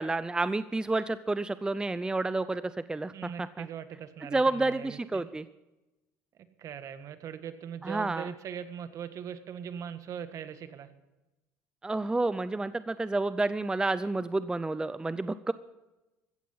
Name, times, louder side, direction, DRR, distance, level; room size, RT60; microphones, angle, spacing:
voice 1, 0.0-3.7 4.3-5.4 7.8-8.3 11.8-15.5, right 2 dB, 10° right, 14 dB, 0.6 m, -30 dB
voice 2, 3.1-5.2 6.3-10.9, right 8 dB, 55° right, 10 dB, 1.6 m, -41 dB
15.5 x 14.0 x 5.7 m, 1.0 s
supercardioid pair, 85°, 7 cm